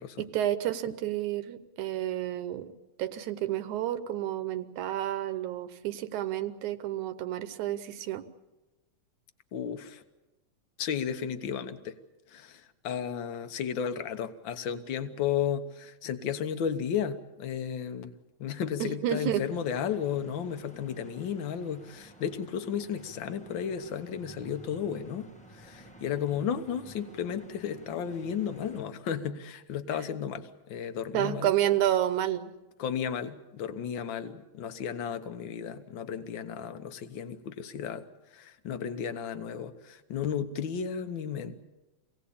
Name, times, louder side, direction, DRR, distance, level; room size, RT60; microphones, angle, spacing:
voice 1, 0.2-2.7 3.0-8.3 18.8-19.4 31.1-32.5, right 12 dB, 85° right, 10 dB, 2.4 m, -30 dB
voice 2, 9.5-10.0 10.8-12.0 12.3-18.1 18.4-31.5 32.8-38.0 38.3-41.6, left 8 dB, 55° left, 10 dB, 1.4 m, -34 dB
sound 1, 19.1-28.8, right 1 dB, 5° left, 0.6 m, -53 dB
25.5 x 17.5 x 8.6 m, 1.1 s
omnidirectional pair, 3.3 m